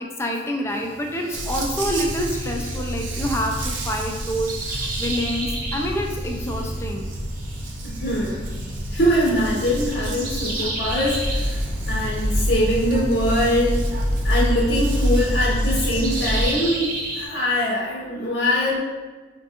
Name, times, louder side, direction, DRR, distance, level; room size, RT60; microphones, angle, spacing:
voice 1, 0.2-7.1, equal, 15° left, 1 dB, 0.4 m, -27 dB
sound 1, 0.7-17.3, right 2 dB, 50° right, 0.8 m, -35 dB
Dog, 1.3-16.5, right 1 dB, 75° right, 0.5 m, -31 dB
voice 2, 7.8-8.5 8.9-13.8 14.2-16.9 17.1-18.8, equal, 70° left, -7 dB, 0.7 m, -23 dB
sound 2, 11.2-16.4, equal, 10° right, 0.8 m, -24 dB
5.0 x 2.3 x 2.8 m, 1.4 s
head